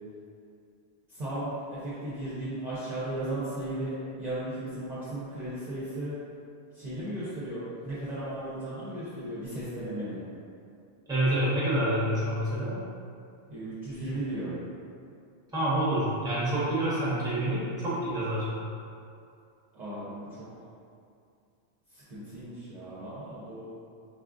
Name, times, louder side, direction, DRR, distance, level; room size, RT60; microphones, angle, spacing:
voice 1, 1.1-6.1 6.7-10.2 13.5-14.5 19.7-20.5 21.9-23.7, right 1 dB, 45° right, -11 dB, 0.7 m, -36 dB
voice 2, 11.1-12.8 15.5-18.5, right 1 dB, 5° right, -10 dB, 0.8 m, -27 dB
4.1 x 2.4 x 2.4 m, 2.4 s
omnidirectional pair, 1.2 m